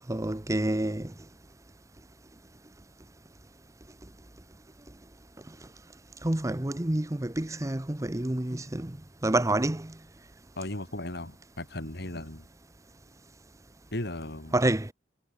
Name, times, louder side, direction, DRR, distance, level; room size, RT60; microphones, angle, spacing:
voice 1, 0.1-1.1 6.2-9.0 9.2-9.9 14.5-14.9, right 1 dB, 15° right, 0.9 m, -28 dB
voice 2, 10.6-12.5 13.9-14.6, left 1 dB, 60° left, 4.7 m, -36 dB
head